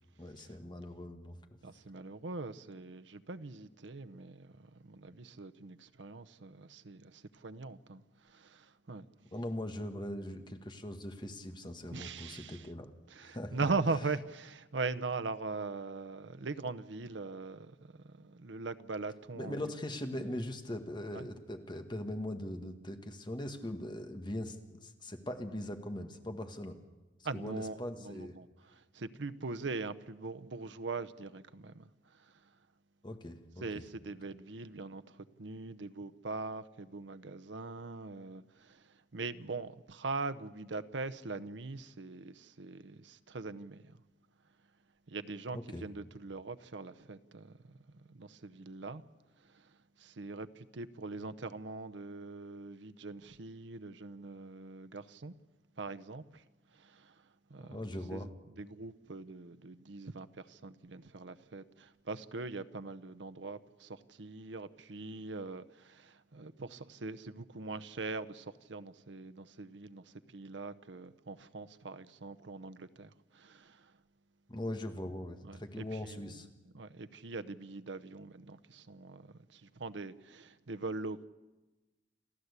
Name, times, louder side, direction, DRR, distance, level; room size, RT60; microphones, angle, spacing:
voice 1, 0.2-1.4 9.3-12.9 13.2-13.7 19.3-26.8 27.3-28.4 33.0-33.8 45.5-45.8 57.6-58.3 74.5-76.5, left 1 dB, 25° left, 1.7 m, -41 dB
voice 2, 1.6-8.0 8.3-9.0 11.9-12.6 13.1-19.7 20.2-20.4 21.1-21.3 27.2-28.5 28.7-31.9 33.6-43.8 45.1-47.6 47.9-49.0 49.5-49.6 50.0-55.3 55.8-56.4 56.8-57.1 57.5-57.8 58.1-58.3 58.6-73.9 75.4-76.2 76.7-81.3, right 3 dB, 85° right, 0.8 m, -41 dB
29.0 x 13.0 x 8.2 m
head